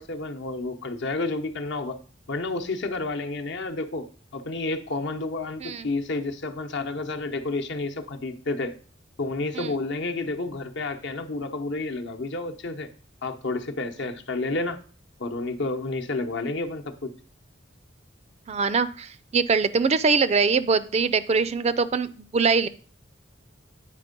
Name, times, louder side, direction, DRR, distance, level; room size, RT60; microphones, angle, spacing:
voice 1, 0.0-2.0 2.3-4.1 4.3-8.7 9.2-12.9 13.2-14.8 15.2-17.1, left 2 dB, 60° left, 5 dB, 0.9 m, -30 dB
voice 2, 18.5-22.7, right 4 dB, 35° right, 14 dB, 0.4 m, -23 dB
9.1 x 4.4 x 5.2 m, 0.41 s
head